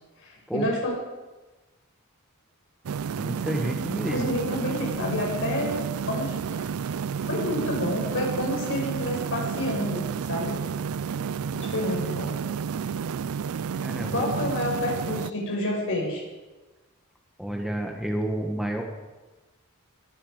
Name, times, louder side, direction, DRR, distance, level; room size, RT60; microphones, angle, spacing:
voice 1, 0.2-0.9 4.1-5.8 6.1-6.7 7.2-10.0 10.3-10.6 11.5-12.3 14.1-16.2, left 1 dB, 60° left, -1 dB, 5.6 m, -29 dB
sound 1, 2.9-15.3, right 6 dB, 70° right, 0.4 m, -31 dB
voice 2, 3.2-4.3 13.8-14.5 17.4-18.8, right 1 dB, ahead, 1 dB, 1.4 m, -30 dB
21.5 x 11.0 x 5.0 m, 1.2 s
head